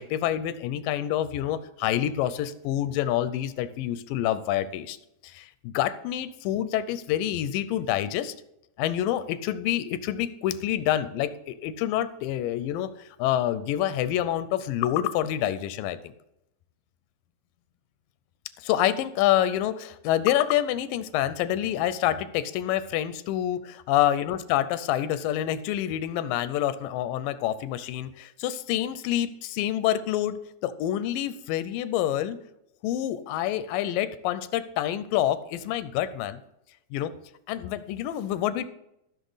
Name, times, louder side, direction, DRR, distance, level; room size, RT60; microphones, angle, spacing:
voice 1, 0.0-5.0 5.2-8.3 8.8-12.9 13.2-16.1 18.6-32.4 32.8-36.4 36.9-37.1 37.5-38.7, left 12 dB, 85° left, 14 dB, 2.3 m, -27 dB
14.0 x 6.6 x 4.0 m, 0.80 s
omnidirectional pair, 3.9 m